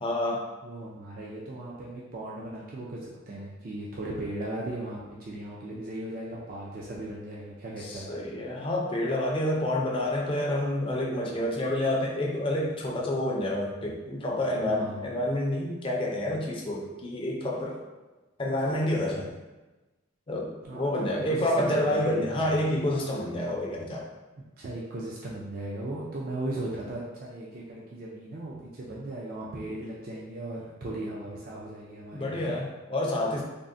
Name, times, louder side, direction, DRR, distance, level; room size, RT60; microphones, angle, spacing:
voice 1, 0.0-0.4 7.8-17.8 18.4-19.4 20.3-24.1 32.1-33.4, left 1 dB, 25° left, -1 dB, 0.4 m, -28 dB
voice 2, 0.6-8.1 14.7-15.0 20.6-22.6 24.6-32.4, right 1 dB, 45° right, -5 dB, 0.4 m, -37 dB
3.5 x 2.0 x 2.5 m, 1.1 s
head